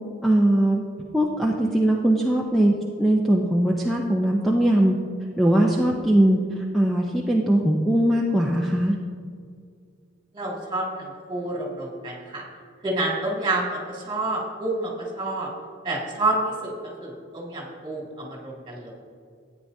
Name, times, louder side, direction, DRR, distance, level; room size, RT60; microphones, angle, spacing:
voice 1, 0.2-0.8 1.1-5.0 5.4-6.4 6.7-8.9, right 1 dB, ahead, -2 dB, 0.6 m, -20 dB
voice 2, 10.3-12.4 12.8-15.5 15.8-16.7 17.0-18.9, right 2 dB, 25° right, -3 dB, 2.1 m, -28 dB
13.5 x 9.1 x 2.7 m, 2.2 s
head